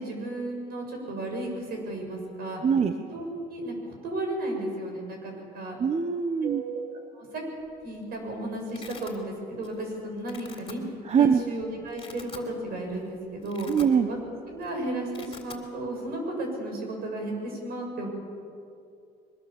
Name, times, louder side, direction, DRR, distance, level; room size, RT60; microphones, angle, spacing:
voice 1, 0.0-2.6 3.1-5.8 6.4-6.8 7.1-7.4 7.8-10.8 11.2-13.7 14.1-14.2 14.5-18.1, right 1 dB, 65° right, 2 dB, 7.3 m, -34 dB
voice 2, 2.6-2.9 5.8-6.6 11.1-11.4 13.7-14.1, right 7 dB, 40° right, 8 dB, 1.1 m, -22 dB
Domestic sounds home sounds, 7.7-8.0 8.3-9.2 9.6-9.9 10.2-10.7 11.4-11.5 11.8-12.5 12.9-13.0 13.3-14.3 14.5-14.7 15.0-15.6, left 5 dB, 30° left, 3.7 m, -46 dB
23.5 x 21.5 x 7.2 m, 2.4 s
cardioid pair, 110°, 17 cm